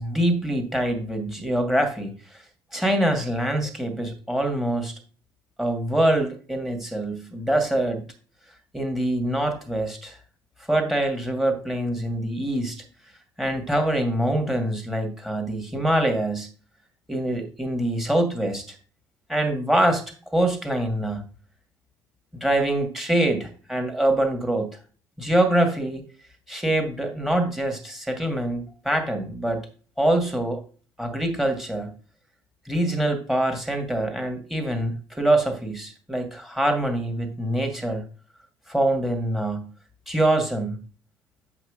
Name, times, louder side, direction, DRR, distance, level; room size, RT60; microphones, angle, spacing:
voice 1, 0.0-2.4 2.7-4.9 5.6-8.0 8.7-10.2 10.7-12.8 13.4-16.5 17.1-18.8 19.3-20.0 20.3-21.3 22.3-24.8 25.2-26.1 26.5-29.6 30.0-30.6 31.0-31.9 32.7-38.0 38.7-39.7 40.1-40.9, right 1 dB, ahead, 5 dB, 2.1 m, -24 dB
8.0 x 3.1 x 5.0 m, 0.39 s
figure-of-eight pair, 55°, 12 cm